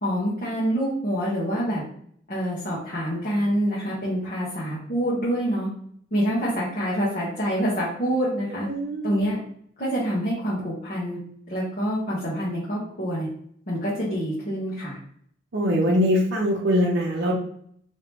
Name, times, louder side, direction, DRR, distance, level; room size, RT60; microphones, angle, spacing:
voice 1, 0.0-1.8 2.3-5.7 6.1-8.7 9.0-9.4 9.8-11.2 11.5-13.3 13.7-15.0, equal, 45° left, -7 dB, 1.1 m, -26 dB
voice 2, 8.7-9.1 15.5-17.3, equal, 60° right, -3 dB, 0.6 m, -22 dB
3.4 x 2.8 x 2.9 m, 0.64 s
head